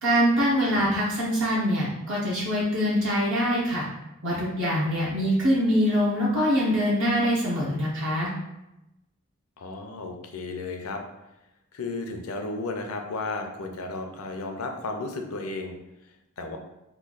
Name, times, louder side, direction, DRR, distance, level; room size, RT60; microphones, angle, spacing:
voice 1, 0.0-3.8 4.2-8.3, equal, 60° right, -5 dB, 0.7 m, -24 dB
voice 2, 9.6-11.0 11.7-15.8 16.4-16.6, left 3 dB, 80° left, 4 dB, 0.5 m, -33 dB
3.0 x 2.2 x 3.8 m, 0.93 s
head